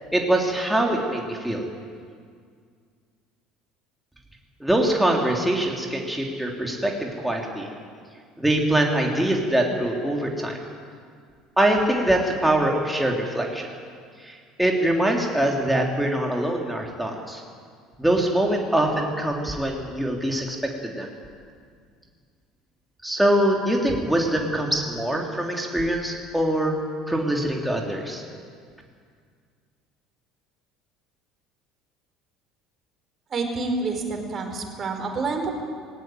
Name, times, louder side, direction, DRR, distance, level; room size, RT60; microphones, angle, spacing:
voice 1, 0.1-1.6 4.6-7.7 8.4-10.6 11.6-13.7 14.2-17.4 18.0-20.6 20.8-21.1 23.0-26.7 27.1-28.2, right 1 dB, 5° right, 0 dB, 3.5 m, -23 dB
voice 2, 33.3-35.6, right 3 dB, 35° right, 3 dB, 4.6 m, -28 dB
18.5 x 18.0 x 9.3 m, 2.1 s
figure-of-eight pair, 65°, 0 cm